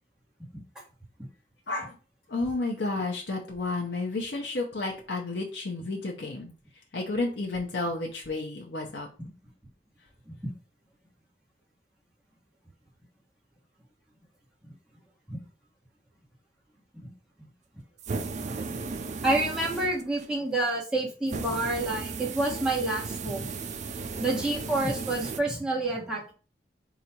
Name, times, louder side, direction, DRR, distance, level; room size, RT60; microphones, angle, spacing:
voice 1, 2.3-6.5 6.9-9.1, left 2 dB, 80° left, -1 dB, 0.8 m, -31 dB
sound 1, 18.0-20.3 21.3-25.4, right 4 dB, 45° right, 0.4 m, -35 dB
voice 2, 19.2-23.5 24.2-26.3, right 2 dB, 5° right, -4 dB, 1.4 m, -28 dB
4.0 x 2.5 x 4.4 m, 0.37 s
head